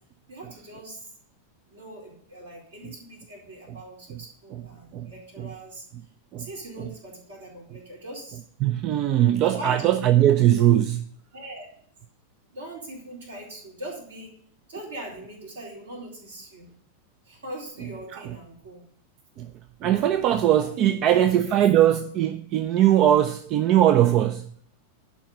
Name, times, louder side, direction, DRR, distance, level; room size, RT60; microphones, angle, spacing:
voice 1, 0.3-1.1 1.7-5.8 6.4-8.4 9.4-10.0 10.5-10.8 11.3-11.7 12.5-14.3 14.7-16.7 17.2-18.8 20.6-21.6, right 1 dB, 65° right, 4.2 m, -41 dB
voice 2, 8.6-11.0 18.1-18.2 19.4-19.5 19.8-24.5, right 11 dB, 35° right, 0.5 m, -20 dB
11.5 x 4.6 x 7.7 m
figure-of-eight pair, 90°, 0 cm